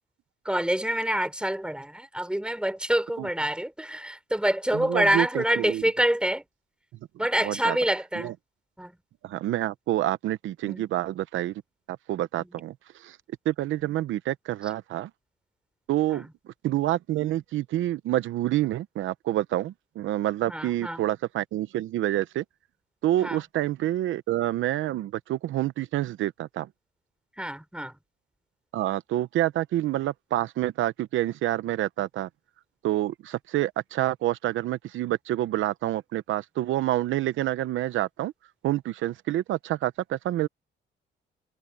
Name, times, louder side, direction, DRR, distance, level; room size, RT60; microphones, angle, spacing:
voice 1, 0.4-6.4 7.2-8.4 8.8-8.9 10.7-10.8 13.8-13.9 16.1-16.3 20.5-21.0 23.2-23.4 27.4-27.9, right 1 dB, 5° right, 5.3 m, -27 dB
voice 2, 4.7-5.8 7.4-7.8 8.2-8.3 9.2-11.5 11.9-13.2 13.4-15.1 15.9-22.4 23.0-26.7 28.7-32.3 32.8-38.3 38.6-40.5, right 14 dB, 80° right, 0.8 m, -28 dB
open air
cardioid pair, 90°, 20 cm